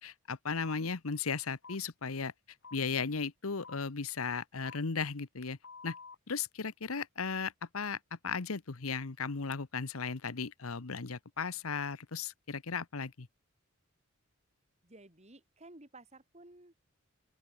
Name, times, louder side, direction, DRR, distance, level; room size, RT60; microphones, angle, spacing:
voice 1, 0.0-2.3 2.7-5.6 5.8-5.9 6.3-8.0 8.2-13.3, left 5 dB, 85° left, 1.1 m, -36 dB
sound 1, 0.6-0.8 1.6-1.8 2.6-2.8 3.6-3.8 4.6-4.8 5.6-6.2, left 5 dB, 60° left, 2.7 m, -49 dB
voice 2, 14.8-16.7, right 2 dB, 30° right, 3.2 m, -54 dB
open air
head